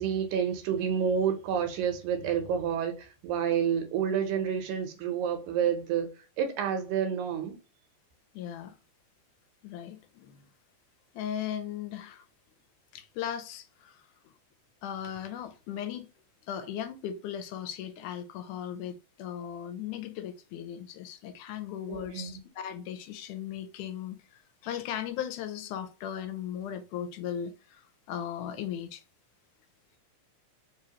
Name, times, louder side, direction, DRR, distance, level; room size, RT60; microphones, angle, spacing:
voice 1, 0.0-6.1 6.4-7.6 21.9-22.4, right 8 dB, 75° right, 2.1 m, -29 dB
voice 2, 8.3-8.7 9.6-10.5 11.1-12.3 12.9-14.0 14.8-16.1 16.5-29.0, left 9 dB, 80° left, 2.0 m, -37 dB
4.7 x 3.0 x 2.8 m
omnidirectional pair, 3.7 m